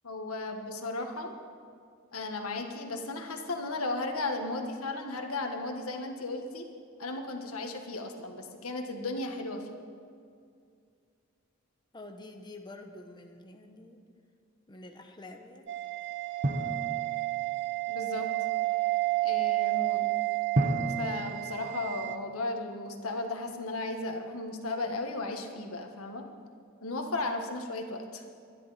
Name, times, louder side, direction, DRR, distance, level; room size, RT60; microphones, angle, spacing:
voice 1, 0.0-1.3 2.1-6.6 7.0-9.8 17.9-18.3 19.2-20.1 21.0-26.3 26.8-28.2, left 2 dB, 90° left, 4 dB, 1.5 m, -35 dB
voice 2, 11.9-14.0 14.7-15.7 16.0-16.1, left 2 dB, 20° left, 4 dB, 0.9 m, -48 dB
sound 1, 15.7-22.2, right 20 dB, 55° right, 0.7 m, -31 dB
Drum, 16.4-17.9 20.6-22.7, right 1 dB, 40° right, 1.1 m, -33 dB
23.5 x 11.0 x 4.2 m, 2.3 s
head